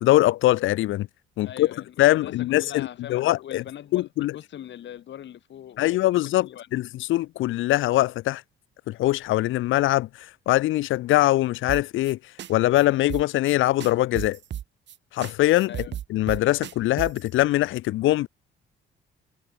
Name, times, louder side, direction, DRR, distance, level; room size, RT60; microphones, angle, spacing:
voice 1, 0.0-1.1 1.4-1.7 2.0-3.6 3.9-4.3 5.8-8.4 8.9-12.2 12.5-14.4 15.1-15.7 16.1-18.3, left 16 dB, 85° left, 0.7 m, -22 dB
voice 2, 1.4-6.9 15.7-16.0, left 10 dB, 65° left, 2.2 m, -41 dB
sound 1, 11.7-12.1 12.4-12.5 12.8-12.9 13.1-13.5 13.8-15.0 15.2-15.3 15.6-17.3, right 11 dB, 65° right, 1.3 m, -34 dB
cardioid pair, 90°, 20 cm